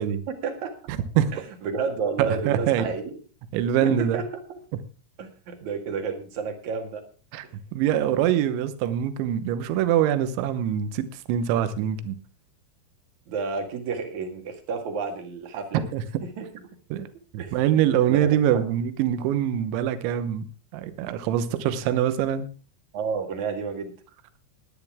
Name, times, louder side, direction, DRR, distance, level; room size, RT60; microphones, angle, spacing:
voice 1, 0.0-0.7 1.6-3.1 3.8-4.6 5.2-7.0 13.3-15.8 16.4-16.5 17.4-17.5 18.1-18.6 22.9-23.9, right 5 dB, 55° right, 5 dB, 2.3 m, -31 dB
voice 2, 0.9-1.4 2.2-2.9 3.5-4.2 7.3-7.5 7.7-12.2 15.9-16.2 16.9-17.1 17.3-22.5, right 10 dB, 75° right, 12 dB, 3.2 m, -24 dB
18.0 x 10.5 x 3.6 m, 0.36 s
omnidirectional pair, 5.8 m